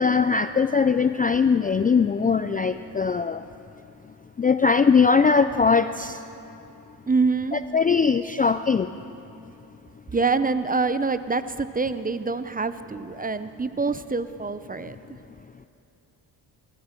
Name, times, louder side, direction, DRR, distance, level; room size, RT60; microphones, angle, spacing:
voice 1, 0.0-3.4 4.4-6.2 7.5-8.9, left 5 dB, 20° left, 11 dB, 0.4 m, -21 dB
voice 2, 7.1-7.6 10.1-15.0, right 4 dB, 20° right, 12 dB, 0.7 m, -25 dB
23.0 x 14.5 x 4.5 m, 2.7 s
cardioid pair, 70°, 42 cm